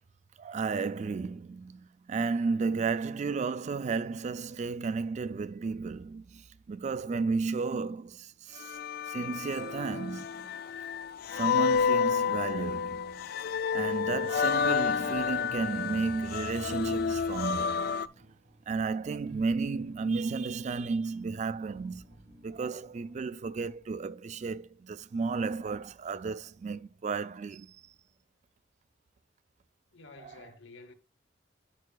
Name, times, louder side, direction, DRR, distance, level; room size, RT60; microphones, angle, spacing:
voice 1, 0.4-8.8 9.1-10.5 11.3-13.2 13.7-18.0 18.7-22.0 22.4-27.8 30.2-30.3, right 4 dB, 40° right, 0.3 m, -33 dB
sound 1, 8.6-18.1, left 6 dB, 55° left, 0.3 m, -30 dB
sound 2, 14.5-24.0, right 1 dB, 80° right, 2.1 m, -58 dB
voice 2, 29.9-30.9, left 3 dB, 75° left, 1.2 m, -51 dB
11.0 x 5.6 x 2.3 m
head